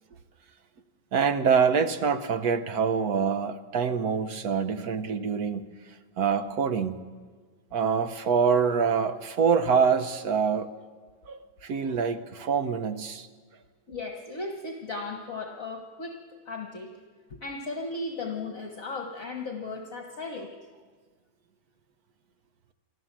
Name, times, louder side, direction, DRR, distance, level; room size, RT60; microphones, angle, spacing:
voice 1, 1.1-5.6 6.2-7.0 7.7-10.7 11.3-13.3, right 6 dB, 55° right, 11 dB, 1.2 m, -25 dB
voice 2, 13.9-16.9 17.3-20.6, left 3 dB, 45° left, 2 dB, 1.6 m, -36 dB
26.5 x 13.5 x 7.4 m, 1.5 s
omnidirectional pair, 2.3 m